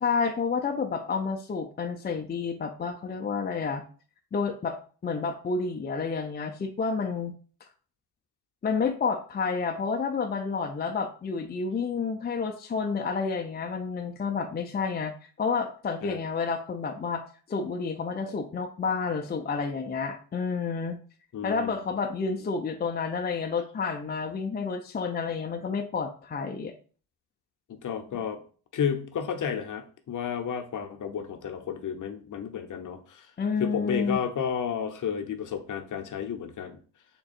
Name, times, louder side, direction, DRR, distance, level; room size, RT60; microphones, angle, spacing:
voice 1, 0.0-3.8 4.3-4.8 5.0-7.3 8.6-17.2 17.5-21.0 21.4-26.7 33.4-34.2, left 5 dB, 25° left, 4 dB, 0.5 m, -30 dB
voice 2, 21.3-21.8 27.7-28.4 28.7-33.3 33.6-36.8, left 7 dB, 45° left, 5 dB, 0.8 m, -32 dB
3.7 x 2.2 x 4.2 m, 0.40 s
supercardioid pair, 65°, 42 cm